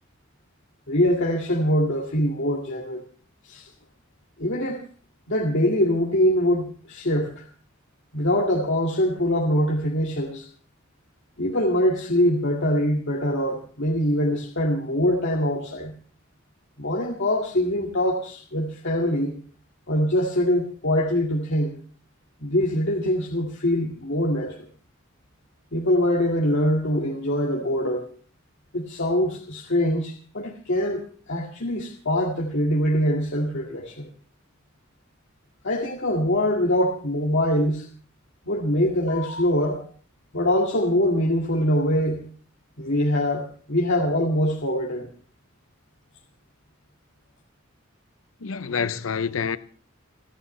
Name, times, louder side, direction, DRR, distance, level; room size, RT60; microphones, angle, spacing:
voice 1, 0.9-3.0 3.4-3.7 4.4-4.8 5.3-7.5 8.1-10.5 11.4-15.9 16.8-19.3 19.9-21.8 22.4-24.7 25.7-28.1 28.7-34.1 35.6-37.9 38.5-39.9 40.3-42.3 42.8-45.1, left 1 dB, 65° left, 2.1 m, -23 dB
voice 2, 48.4-49.6, left 6 dB, 80° left, 0.7 m, -27 dB
29.5 x 11.0 x 3.3 m
head